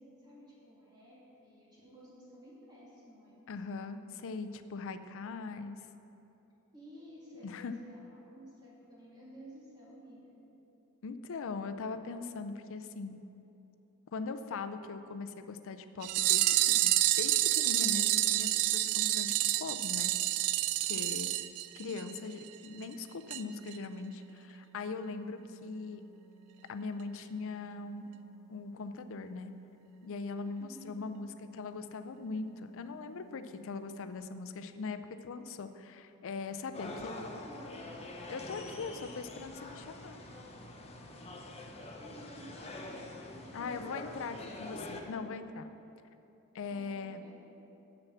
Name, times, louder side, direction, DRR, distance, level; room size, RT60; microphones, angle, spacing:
voice 1, 0.0-3.4 6.7-10.4 30.6-31.1 36.8-38.0 42.0-45.2 46.7-47.5, equal, 20° right, -6 dB, 2.3 m, -53 dB
voice 2, 3.5-5.8 7.4-7.7 11.0-13.2 14.1-20.1 20.8-21.3 21.8-26.0 26.7-28.0 28.5-29.5 30.0-36.9 38.3-40.2 43.5-45.7 46.5-47.2, left 4 dB, 60° left, 9 dB, 0.5 m, -40 dB
sound 1, 16.0-22.2 22.5-22.6 22.8-22.9 23.3-23.4 23.7-23.8, right 15 dB, 85° right, 0.3 m, -28 dB
sound 2, 22.7-34.2, right 7 dB, 5° right, 1.1 m, -60 dB
sound 3, 36.7-45.0, left 2 dB, 30° left, 0.7 m, -45 dB
7.0 x 6.6 x 7.2 m, 3.0 s
head